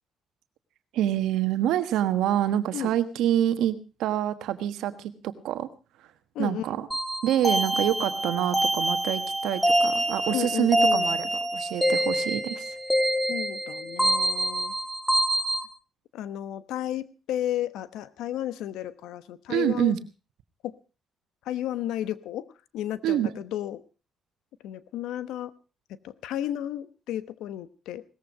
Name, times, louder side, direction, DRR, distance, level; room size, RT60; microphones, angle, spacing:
voice 1, 0.9-5.7 6.4-6.9 7.2-12.7 19.5-20.0 23.0-23.3, right 11 dB, 90° right, 11 dB, 1.4 m, -26 dB
voice 2, 6.3-6.8 10.3-11.2 13.3-14.7 16.1-20.0 20.6-20.8 21.4-22.5 22.7-23.8 24.6-25.5 26.0-28.0, left 12 dB, 90° left, 15 dB, 1.0 m, -33 dB
sound 1, 6.9-15.6, right 1 dB, ahead, 2.3 m, -26 dB
18.5 x 14.5 x 4.8 m, 0.33 s
cardioid pair, 90°, 0 cm